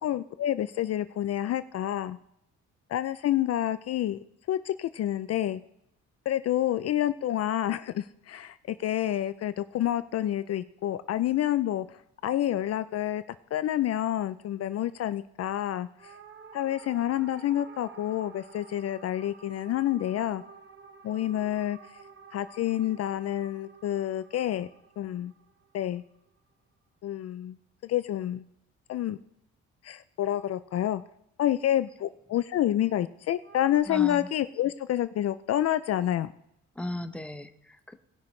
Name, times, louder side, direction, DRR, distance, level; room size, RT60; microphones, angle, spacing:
voice 1, 0.0-2.2 2.9-4.2 4.5-5.6 6.3-13.2 13.5-16.2 16.5-20.4 21.0-21.8 22.3-24.7 25.0-25.3 25.7-26.0 27.0-27.6 27.8-28.4 28.9-29.2 29.8-31.0 31.4-36.3, left 12 dB, 55° left, 14 dB, 0.4 m, -28 dB
sound 1, 16.0-26.5 33.4-33.8, right 5 dB, 40° right, 0.9 m, -51 dB
voice 2, 33.9-34.3 36.8-37.9, left 1 dB, 5° left, 8 dB, 0.8 m, -36 dB
18.0 x 6.2 x 3.2 m, 0.78 s
cardioid pair, 90°, 30 cm